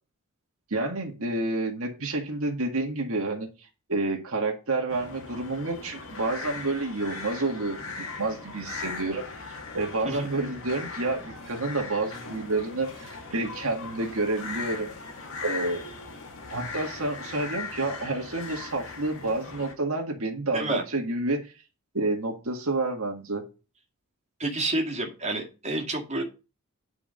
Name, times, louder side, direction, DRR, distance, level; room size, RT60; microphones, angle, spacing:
voice 1, 0.7-3.5 3.9-14.9 15.4-15.8 16.5-21.4 21.9-23.4, right 2 dB, 65° right, 2 dB, 1.9 m, -29 dB
sound 1, 4.9-19.7, left 4 dB, 65° left, 2.2 m, -39 dB
voice 2, 24.4-26.2, right 2 dB, 30° right, -1 dB, 2.2 m, -29 dB
9.5 x 4.9 x 5.3 m, 0.31 s
head